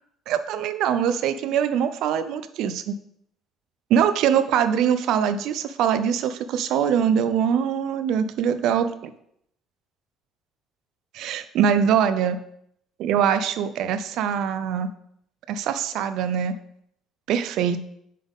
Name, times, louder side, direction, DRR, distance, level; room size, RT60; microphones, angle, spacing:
voice 1, 0.3-2.9 3.9-9.1 11.1-12.4 13.0-14.9 15.5-16.6 17.3-17.8, right 8 dB, 70° right, 12 dB, 0.5 m, -23 dB
7.4 x 4.0 x 3.6 m, 0.72 s
cardioid pair, 95°, 0 cm